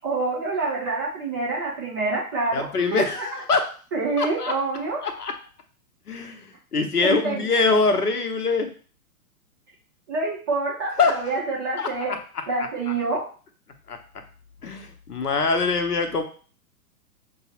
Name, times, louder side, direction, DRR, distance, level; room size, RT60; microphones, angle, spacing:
voice 1, 0.0-3.2 3.9-5.0 7.0-7.5 7.9-8.0 10.1-12.1 12.5-13.3, right 3 dB, 15° right, -4 dB, 0.4 m, -27 dB
voice 2, 2.5-3.7 4.2-4.5 5.0-5.3 6.1-8.7 11.0-11.2 11.8-12.4 13.9-14.0 14.6-16.2, left 4 dB, 90° left, 6 dB, 0.8 m, -24 dB
5.3 x 2.0 x 2.8 m, 0.40 s
figure-of-eight pair, 115°, 45 cm